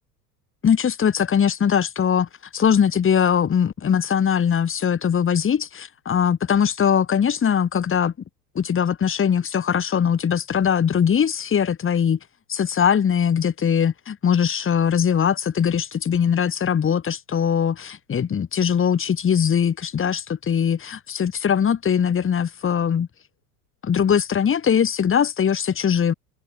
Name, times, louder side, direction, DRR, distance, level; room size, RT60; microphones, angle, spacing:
voice 1, 0.6-8.1 8.5-12.2 12.5-23.1 23.8-26.1, left 8 dB, 25° left, 3.3 m, -21 dB
figure-of-eight pair, 80°, 50 cm